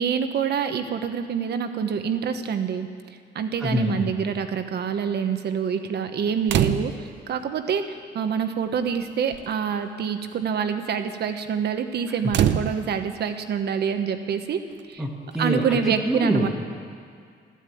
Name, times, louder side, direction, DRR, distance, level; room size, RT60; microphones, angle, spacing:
voice 1, 0.0-2.9 3.3-7.8 8.1-14.6 14.9-15.1 15.4-16.5, right 7 dB, 60° right, 8 dB, 1.1 m, -26 dB
voice 2, 3.6-4.1 15.0-16.5, equal, ahead, -4 dB, 1.4 m, -25 dB
sound 1, 6.5-7.2 8.3-8.4 8.7-9.0 9.3-9.6 12.3-13.2 14.8-14.9, right 9 dB, 75° right, 0.7 m, -25 dB
12.5 x 12.0 x 8.5 m, 2.2 s
cardioid pair, 145°, 19 cm